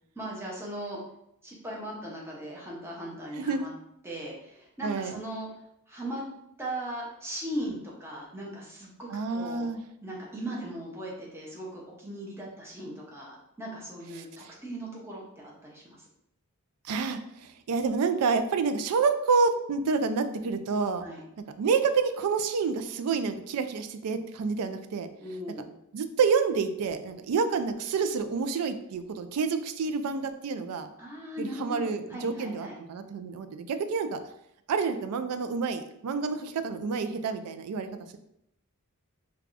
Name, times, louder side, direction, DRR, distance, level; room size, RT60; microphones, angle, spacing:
voice 1, 0.2-1.0 1.4-3.7 4.0-5.5 5.9-6.2 6.6-9.7 10.0-16.0 21.0-21.2 25.2-25.7 31.0-32.7, right 1 dB, 10° right, -4 dB, 0.7 m, -38 dB
voice 2, 3.4-3.7 4.8-5.2 9.1-9.8 14.1-14.5 16.8-21.0 21.6-25.1 25.9-30.9 31.4-34.2 34.7-38.2, right 5 dB, 90° right, 9 dB, 0.4 m, -28 dB
4.6 x 2.3 x 2.5 m, 0.78 s
head